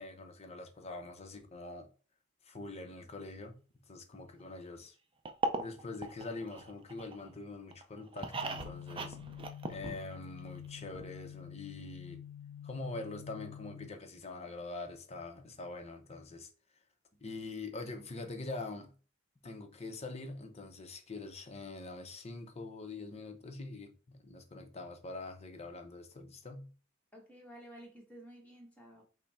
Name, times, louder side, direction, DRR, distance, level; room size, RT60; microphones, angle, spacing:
voice 1, 0.0-1.9 2.4-3.6 3.9-5.0 5.6-9.2 9.7-12.2 12.6-16.5 17.2-18.9 19.4-26.7, left 3 dB, 30° left, 0.8 m, -44 dB
sound 1, 5.2-7.3 7.7-10.4 10.6-10.7 10.9-11.0, right 2 dB, 25° right, 0.5 m, -38 dB
sound 2, 8.3-13.9, left 9 dB, 75° left, 0.4 m, -48 dB
voice 2, 27.1-29.0, right 1 dB, 5° left, 1.4 m, -52 dB
5.6 x 2.2 x 4.3 m
head